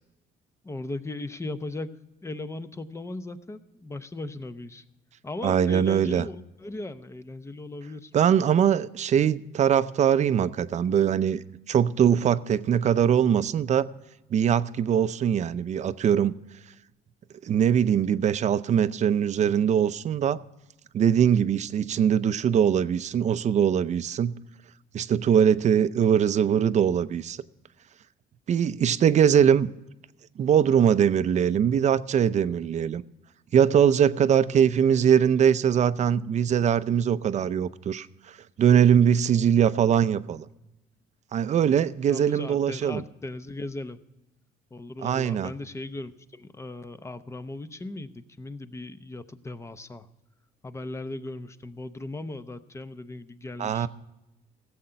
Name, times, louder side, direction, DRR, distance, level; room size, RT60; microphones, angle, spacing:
voice 1, 0.6-1.9 2.2-4.8 5.2-8.1 34.5-34.6 42.1-44.0 44.7-50.1 50.6-53.9, left 2 dB, 15° left, 0.7 m, -37 dB
voice 2, 5.4-6.3 8.1-13.9 14.3-16.3 17.4-20.4 20.9-24.3 24.9-27.4 28.5-29.7 30.4-33.0 33.5-38.1 38.6-40.5 41.3-43.0 45.0-45.5 53.6-53.9, right 8 dB, 45° right, 0.6 m, -22 dB
16.0 x 7.8 x 5.7 m
cardioid pair, 110°, 17 cm